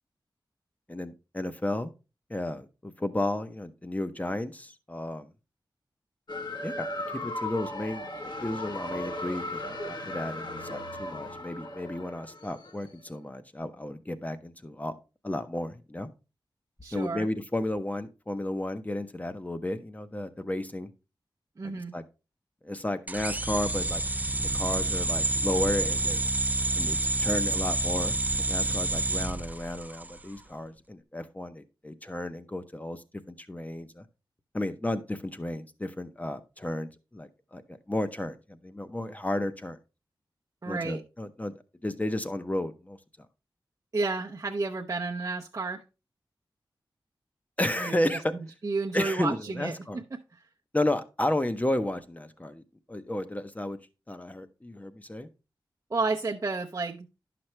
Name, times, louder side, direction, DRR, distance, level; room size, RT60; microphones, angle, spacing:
voice 1, 0.9-1.9 2.3-5.3 6.6-14.9 15.2-16.1 16.9-20.9 21.9-22.0 22.6-24.0 24.5-26.2 26.7-28.2 28.5-34.0 34.5-39.8 40.7-41.5 41.8-43.0 47.6-48.3 48.9-50.0 50.7-53.8 54.1-55.3, left 1 dB, 20° left, 10 dB, 0.8 m, -33 dB
sound 1, 6.3-12.9, left 1 dB, 55° left, 1.2 m, -37 dB
voice 2, 16.8-17.3 21.6-21.9 40.6-41.0 43.9-45.8 47.8-48.2 48.6-50.0 50.3-50.5 55.9-57.1, right 3 dB, 40° right, -1 dB, 0.7 m, -31 dB
sound 2, 23.1-30.2, right 2 dB, 20° right, 0.3 m, -28 dB
10.5 x 5.9 x 3.2 m, 0.29 s
wide cardioid pair, 85°, 9 cm